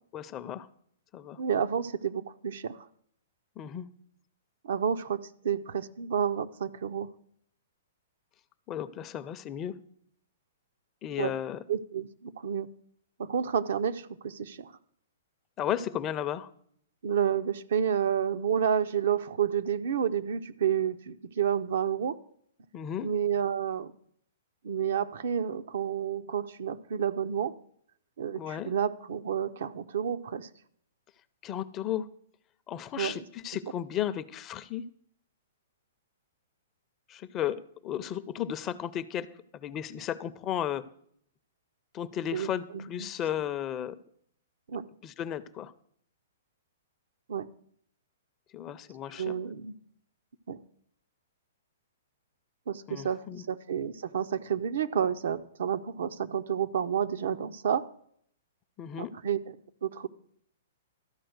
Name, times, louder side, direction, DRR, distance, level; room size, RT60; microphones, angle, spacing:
voice 1, 0.1-0.7 1.1-1.4 3.6-3.9 8.7-9.8 11.0-11.6 15.6-16.5 22.7-23.1 28.4-28.7 31.4-32.1 32.7-34.8 37.1-39.3 39.5-40.8 41.9-44.0 45.0-45.7 48.5-49.3 52.9-53.4 58.8-59.1, left 10 dB, 25° left, 13 dB, 0.5 m, -34 dB
voice 2, 1.4-2.9 4.6-5.2 5.4-7.1 11.2-11.3 11.7-12.7 13.2-14.7 17.0-22.2 23.0-23.9 24.6-27.5 28.2-30.5 33.0-33.2 42.3-43.1 44.7-44.8 47.3-47.5 49.2-49.7 50.5-50.6 52.7-57.8 59.0-59.6 59.8-60.1, right 8 dB, 70° right, 10 dB, 0.5 m, -30 dB
13.0 x 4.4 x 7.9 m, 0.66 s
hypercardioid pair, 130°, 0 cm